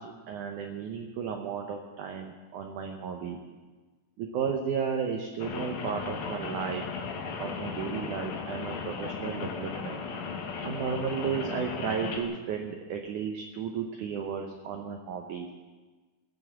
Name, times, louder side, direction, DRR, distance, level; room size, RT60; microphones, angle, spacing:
voice 1, 0.0-3.4 4.2-6.8 7.4-10.0 10.6-15.5, right 7 dB, 70° right, 3 dB, 2.0 m, -34 dB
Rain, 5.4-12.2, left 5 dB, 75° left, 3.3 m, -36 dB
18.5 x 7.5 x 7.3 m, 1.3 s
omnidirectional pair, 4.5 m